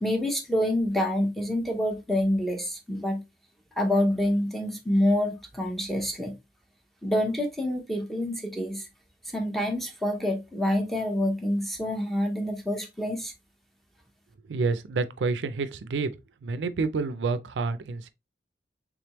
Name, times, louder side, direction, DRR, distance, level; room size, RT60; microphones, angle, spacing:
voice 1, 0.0-3.2 3.8-6.4 7.0-8.9 9.3-13.3, left 1 dB, ahead, 0.7 m, -27 dB
voice 2, 14.5-16.1 16.4-18.1, right 4 dB, 90° right, 0.4 m, -28 dB
3.5 x 3.3 x 2.9 m
head